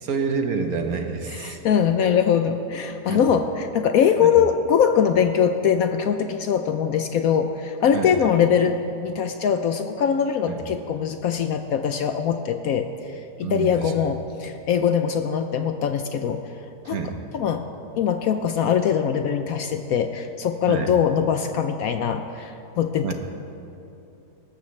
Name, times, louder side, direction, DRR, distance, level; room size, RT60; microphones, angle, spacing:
voice 1, 0.0-1.6 3.1-3.3 4.2-4.3 7.9-8.1 10.5-10.6 13.4-13.9 16.8-17.2 20.7-21.0 23.0-23.1, right 5 dB, 60° right, 5 dB, 1.3 m, -28 dB
voice 2, 1.3-12.9 13.4-16.4 16.8-17.0 17.3-17.7 18.0-23.1, left 7 dB, 70° left, 7 dB, 0.9 m, -22 dB
18.5 x 13.0 x 3.2 m, 2.7 s
omnidirectional pair, 1.8 m